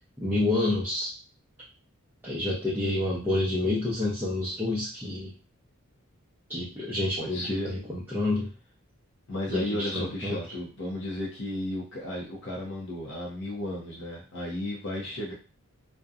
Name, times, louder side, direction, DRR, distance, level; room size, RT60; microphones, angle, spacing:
voice 1, 0.2-1.1 2.2-5.3 6.5-8.5 9.5-10.4, left 2 dB, 10° right, -9 dB, 0.5 m, -28 dB
voice 2, 7.2-7.7 9.3-15.3, left 1 dB, 60° left, -4 dB, 0.7 m, -34 dB
2.6 x 2.1 x 2.4 m, 0.33 s
head